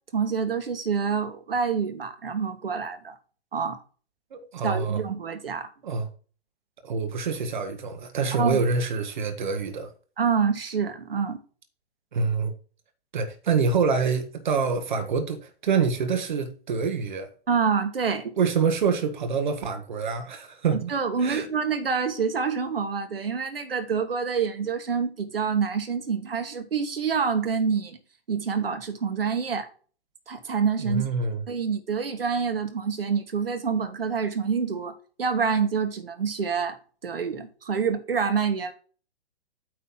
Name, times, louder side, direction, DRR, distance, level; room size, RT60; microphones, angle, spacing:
voice 1, 0.1-3.2 3.5-3.8 4.6-5.7 8.3-8.6 10.2-11.4 17.5-18.3 20.7-28.0 28.3-29.7 30.3-31.0 31.5-36.8 37.0-38.7, right 6 dB, 65° right, 1.4 m, -27 dB
voice 2, 4.3-5.0 5.8-6.1 6.8-9.9 12.1-12.5 13.1-17.3 18.4-20.9 21.2-21.5 30.8-31.4, right 5 dB, 50° right, 1.1 m, -26 dB
8.9 x 3.3 x 5.5 m
figure-of-eight pair, 120°, 31 cm